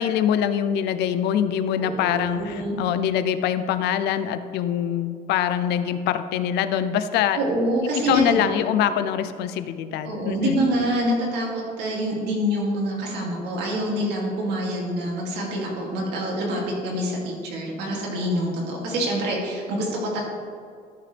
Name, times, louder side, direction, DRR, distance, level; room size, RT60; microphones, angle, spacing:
voice 1, 0.0-7.4 8.1-10.6, left 9 dB, 85° left, 11 dB, 0.6 m, -24 dB
voice 2, 1.8-2.8 7.3-8.6 10.0-20.0, equal, 85° right, -3 dB, 2.7 m, -26 dB
13.5 x 6.8 x 3.4 m, 2.2 s
cardioid pair, 110°, 17 cm